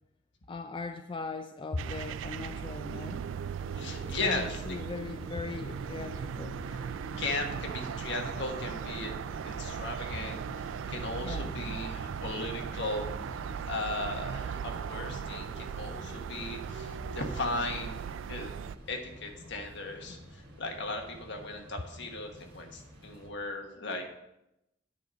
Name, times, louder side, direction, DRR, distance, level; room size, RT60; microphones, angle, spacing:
voice 1, 0.5-3.2 4.2-6.6 11.2-11.5, left 3 dB, 25° left, 7 dB, 0.3 m, -39 dB
sound 1, 1.8-18.8, right 7 dB, 70° right, 0.3 m, -38 dB
sound 2, 3.6-23.3, right 1 dB, 50° right, 1.9 m, -46 dB
voice 2, 3.8-4.8 6.7-6.8 7.2-18.5 18.9-24.2, left 2 dB, 65° left, 3 dB, 1.3 m, -37 dB
9.4 x 4.2 x 6.3 m, 0.87 s
head